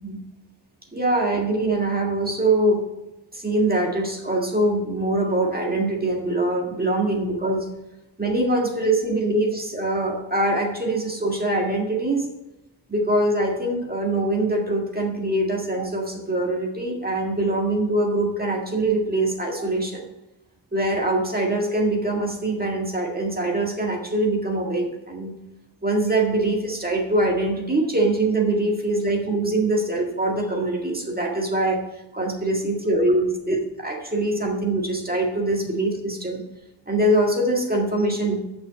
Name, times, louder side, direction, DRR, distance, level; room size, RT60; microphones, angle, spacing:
voice 1, 0.9-2.8 3.3-7.7 8.2-12.3 12.9-20.1 20.7-25.3 25.8-31.8 32.1-36.4 36.9-38.4, right 2 dB, 20° right, 0 dB, 1.9 m, -23 dB
6.6 x 6.1 x 7.1 m, 0.97 s
wide cardioid pair, 125°, 46 cm